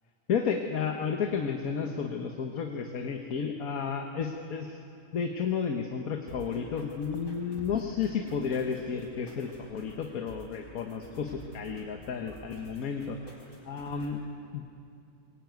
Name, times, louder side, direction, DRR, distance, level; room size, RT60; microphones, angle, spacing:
voice 1, 0.3-4.7 5.1-13.2 13.6-14.2 14.5-14.6, left 6 dB, 75° left, 4 dB, 1.6 m, -32 dB
sound 1, 6.3-14.3, equal, 60° left, 5.2 m, -50 dB
23.5 x 21.5 x 9.3 m, 2.7 s
omnidirectional pair, 1.5 m